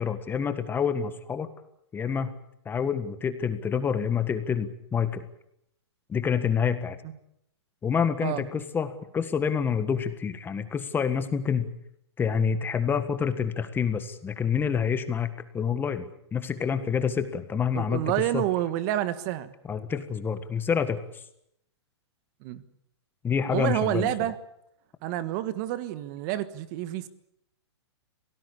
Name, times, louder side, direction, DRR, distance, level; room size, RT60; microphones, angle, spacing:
voice 1, 0.0-1.5 1.9-2.3 2.6-5.2 6.1-7.0 7.8-11.6 12.2-18.0 18.3-18.4 19.7-21.0 23.2-24.1, left 7 dB, 15° left, 1.6 m, -27 dB
voice 2, 17.7-19.5 22.4-22.6 23.5-24.4 25.0-27.1, right 13 dB, 40° right, 1.5 m, -28 dB
26.5 x 18.5 x 8.6 m
hypercardioid pair, 140°, 15 cm